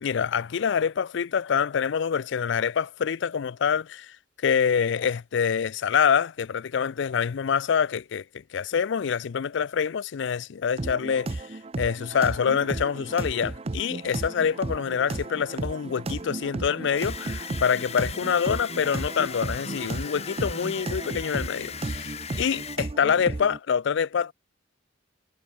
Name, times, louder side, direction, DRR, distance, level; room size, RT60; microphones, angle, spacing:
voice 1, 0.0-4.2 4.4-8.2 8.5-24.3, left 7 dB, 65° left, 0.4 m, -26 dB
sound 1, 10.8-23.6, right 2 dB, 30° right, 0.6 m, -34 dB
sound 2, 17.0-22.8, left 7 dB, 35° left, 1.4 m, -39 dB
head